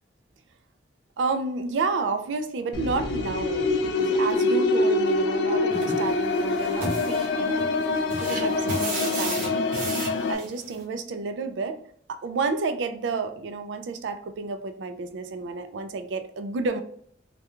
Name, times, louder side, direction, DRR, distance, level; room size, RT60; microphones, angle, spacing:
voice 1, 1.2-7.7 8.2-9.7 10.3-11.8 12.1-16.8, right 4 dB, 75° right, 9 dB, 0.3 m, -30 dB
sound 1, 2.7-10.3, left 2 dB, 70° left, 0.3 m, -25 dB
sound 2, 5.7-10.8, right 2 dB, 50° right, 0.7 m, -35 dB
2.4 x 2.2 x 2.9 m, 0.63 s
head